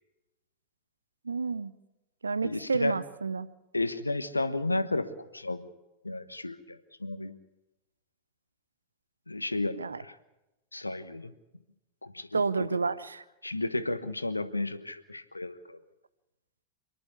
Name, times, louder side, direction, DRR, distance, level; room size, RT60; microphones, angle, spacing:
voice 1, 1.2-1.7 2.2-3.5 9.8-10.0 12.3-13.2, right 4 dB, 75° right, 16 dB, 0.7 m, -30 dB
voice 2, 2.4-3.0 3.7-5.1 5.3-5.7 6.0-7.3 9.3-10.2 10.7-11.3 12.0-12.7 13.4-15.8, left 2 dB, 85° left, 12 dB, 1.2 m, -33 dB
27.5 x 11.0 x 9.7 m, 1.0 s
figure-of-eight pair, 90°, 0 cm